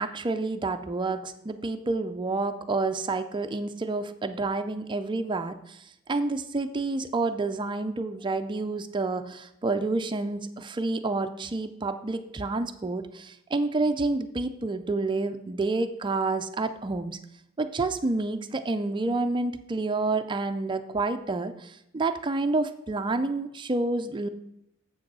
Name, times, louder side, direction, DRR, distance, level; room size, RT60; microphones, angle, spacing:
voice 1, 0.0-5.8 6.1-17.2 17.6-24.3, right 3 dB, 25° right, 9 dB, 0.4 m, -29 dB
7.6 x 6.3 x 6.1 m, 0.81 s
head